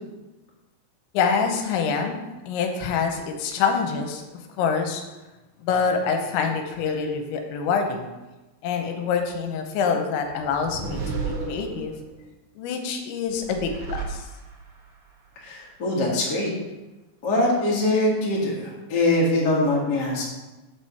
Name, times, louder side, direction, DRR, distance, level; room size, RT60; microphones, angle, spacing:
voice 1, 1.1-2.2 2.5-4.2 4.6-5.0 5.6-8.1 8.6-11.9 12.6-14.3, left 6 dB, 85° left, 5 dB, 3.1 m, -26 dB
sound 1, 10.2-12.2 13.3-14.8, right 4 dB, 90° right, 1.5 m, -33 dB
voice 2, 15.4-16.5 17.2-20.2, left 1 dB, 55° left, -5 dB, 1.1 m, -23 dB
6.7 x 4.9 x 5.6 m, 1.1 s
omnidirectional pair, 5.2 m